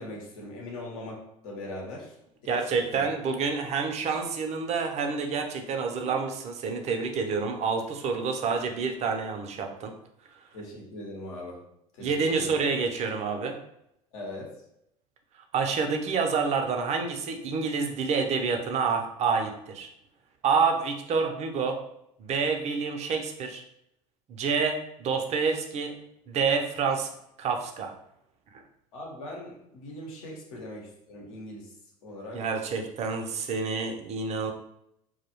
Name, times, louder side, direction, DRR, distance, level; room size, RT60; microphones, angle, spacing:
voice 1, 0.0-2.1 2.4-3.0 10.5-11.6 12.0-12.5 14.1-14.5 28.9-31.7 32.0-32.4, left 1 dB, 65° left, -2 dB, 0.9 m, -40 dB
voice 2, 2.5-9.9 12.0-13.5 15.5-19.9 20.4-21.8 22.2-23.6 24.3-26.0 26.3-27.1 27.4-27.9 28.5-28.6 32.3-34.5, right 5 dB, 40° right, 4 dB, 0.5 m, -28 dB
2.2 x 2.0 x 2.9 m, 0.78 s
hypercardioid pair, 75°, 18 cm